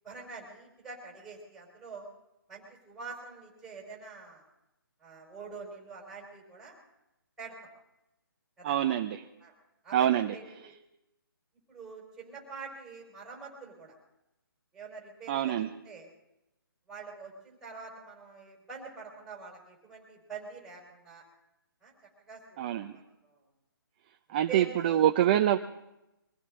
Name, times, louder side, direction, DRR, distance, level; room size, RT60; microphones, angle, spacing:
voice 1, 0.0-2.1 2.5-4.4 5.0-6.8 7.4-7.7 8.6-8.8 9.4-9.5 9.8-10.8 11.7-13.9 14.7-16.1 16.9-21.2 21.8-21.9 22.3-22.6 22.9-23.4 24.3-25.0, right 5 dB, 5° right, -1 dB, 4.5 m, -45 dB
voice 2, 8.6-9.3 9.9-10.4 15.3-15.7 22.6-23.0 24.3-25.6, right 11 dB, 25° right, 6 dB, 0.6 m, -25 dB
23.5 x 16.0 x 3.7 m, 0.91 s
hypercardioid pair, 160°, 12 cm